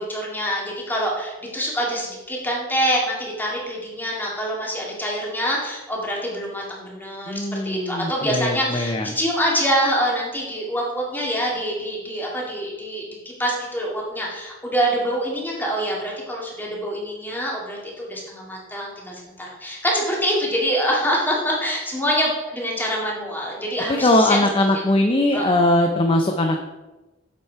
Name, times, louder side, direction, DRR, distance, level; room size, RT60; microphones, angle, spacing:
voice 1, 0.0-24.4 24.7-24.9 25.3-25.6, equal, 10° left, -3 dB, 2.2 m, -25 dB
voice 2, 7.3-9.2 23.9-26.6, left 1 dB, 25° left, 4 dB, 0.6 m, -20 dB
8.4 x 7.2 x 4.6 m, 1.1 s
head